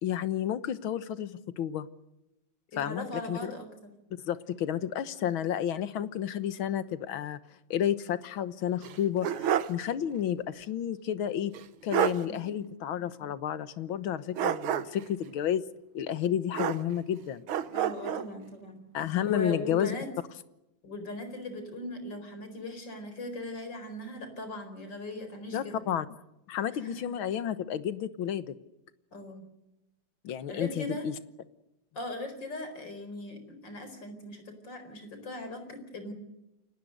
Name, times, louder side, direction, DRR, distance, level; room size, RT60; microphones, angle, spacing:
voice 1, 0.0-1.9 2.8-3.5 4.3-7.4 7.7-11.5 11.8-15.6 15.9-17.4 18.9-20.0 25.5-26.1 26.5-28.5 30.2-31.1, left 10 dB, 75° left, 13 dB, 1.9 m, -31 dB
voice 2, 2.7-3.7 12.2-12.6 17.7-18.8 19.3-20.1 20.8-25.7 26.7-27.1 29.1-29.5 30.5-31.1 31.9-36.1, left 2 dB, 60° left, 8 dB, 5.2 m, -39 dB
sound 1, 8.8-9.8 10.2-10.3 11.5-11.6 11.9-12.2 14.4-15.1 16.5-17.1 17.5-18.3, right 10 dB, 85° right, 1.9 m, -29 dB
29.0 x 19.0 x 6.5 m, 0.93 s
omnidirectional pair, 2.2 m